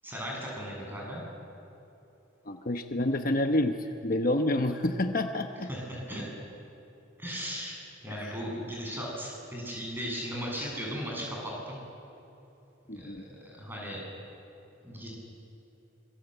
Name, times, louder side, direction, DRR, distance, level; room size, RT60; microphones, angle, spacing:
voice 1, 0.0-1.2 5.7-6.2 7.2-11.8 12.9-14.0 14.8-15.1, equal, 10° right, -3 dB, 7.9 m, -37 dB
voice 2, 2.5-5.7 8.1-8.3 12.9-13.2, left 1 dB, 45° left, 5 dB, 1.0 m, -28 dB
25.5 x 21.5 x 8.1 m, 3.0 s
head